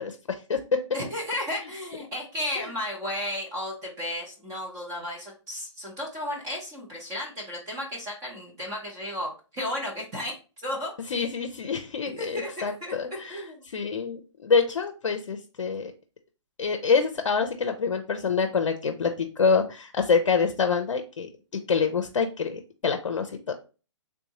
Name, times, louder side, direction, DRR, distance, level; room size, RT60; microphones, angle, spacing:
voice 1, 0.0-0.8 2.6-2.7 11.1-15.9 16.6-21.3 21.7-23.5, left 5 dB, 80° left, 6 dB, 0.4 m, -26 dB
voice 2, 0.9-10.4 10.6-11.1 12.2-13.6, left 1 dB, 20° right, -3 dB, 0.8 m, -34 dB
3.4 x 2.6 x 2.8 m, 0.34 s
hypercardioid pair, 135°, 16 cm